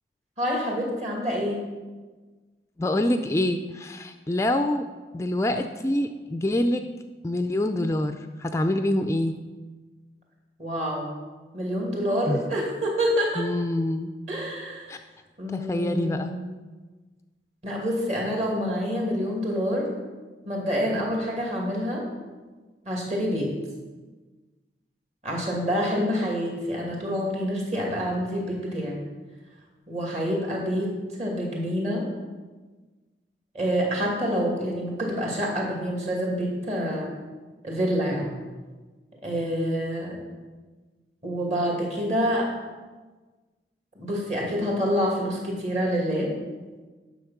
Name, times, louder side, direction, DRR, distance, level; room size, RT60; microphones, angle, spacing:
voice 1, 0.4-1.6 10.6-11.1 11.5-13.5 14.3-14.9 15.4-16.3 17.6-19.9 20.4-22.0 22.9-23.5 25.2-29.0 29.9-30.9 31.2-32.1 33.5-37.1 37.6-38.3 39.2-40.2 41.2-42.5 43.9-46.3, equal, 40° right, -1 dB, 2.5 m, -27 dB
voice 2, 2.8-4.8 5.1-6.8 7.2-9.4 12.3-12.4 13.4-14.1 14.9-15.0 15.5-16.3, left 1 dB, 15° left, 7 dB, 0.3 m, -26 dB
10.0 x 6.4 x 5.9 m, 1.3 s
head